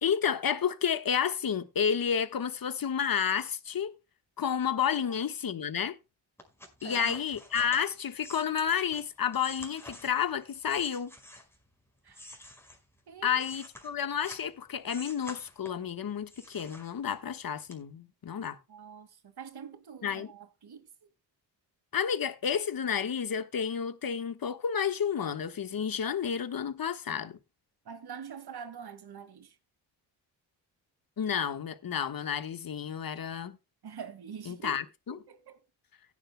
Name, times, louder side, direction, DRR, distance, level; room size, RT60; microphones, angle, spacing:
voice 1, 0.0-4.0 4.4-6.0 6.8-11.1 13.2-18.6 20.0-20.3 21.9-27.4 31.2-33.6 34.5-35.2, left 8 dB, 50° left, 1.4 m, -31 dB
sound 1, 6.4-11.7 12.1-14.5 14.9-15.9 16.3-17.3 17.7-17.8, left 1 dB, 5° left, 5.2 m, -48 dB
voice 2, 6.8-7.2 12.0-12.3 13.1-13.4 18.7-20.9 27.8-29.6 33.8-35.6, right 7 dB, 55° right, 2.1 m, -45 dB
16.5 x 10.0 x 2.2 m
supercardioid pair, 55°, 45 cm